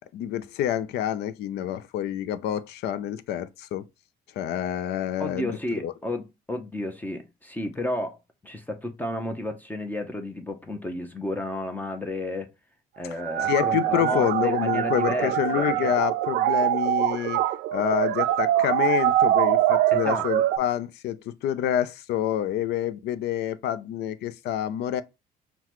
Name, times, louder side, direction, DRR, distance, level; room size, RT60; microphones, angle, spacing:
voice 1, 0.1-3.8 4.4-5.6 5.8-5.9 13.5-17.4 17.7-25.0, left 11 dB, 75° left, 0.5 m, -27 dB
voice 2, 5.2-8.2 8.4-12.5 13.0-16.0 19.9-20.3, left 1 dB, 10° left, 0.7 m, -32 dB
sound 1, 13.2-20.6, right 13 dB, 80° right, 0.4 m, -24 dB
5.7 x 2.2 x 3.0 m
cardioid pair, 110°, 17 cm